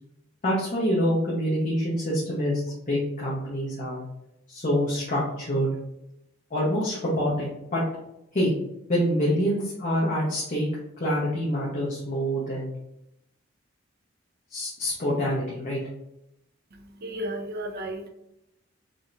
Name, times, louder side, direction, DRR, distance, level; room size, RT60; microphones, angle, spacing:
voice 1, 0.4-4.0 4.5-5.7 6.5-7.8 8.3-8.5 8.9-10.7 11.0-12.7 14.5-15.8, equal, 40° left, -7 dB, 1.0 m, -26 dB
voice 2, 16.7-18.1, right 1 dB, 50° right, 4 dB, 0.6 m, -34 dB
4.9 x 3.0 x 2.5 m, 0.85 s
head